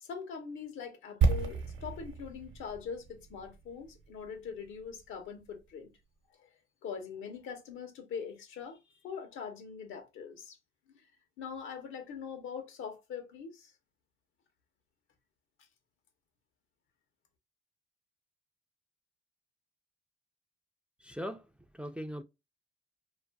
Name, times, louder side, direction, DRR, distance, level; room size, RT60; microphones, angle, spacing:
voice 1, 0.0-5.9 6.4-6.5 6.8-10.6 10.9-11.0 11.4-13.7, left 6 dB, 85° left, 0.8 m, -42 dB
sound 1, 1.2-5.1 5.4-5.5, right 4 dB, 70° right, 0.8 m, -32 dB
voice 2, 21.0-21.5 21.7-22.2, equal, 5° right, 0.3 m, -39 dB
2.5 x 2.5 x 2.2 m
cardioid pair, 90°, 20 cm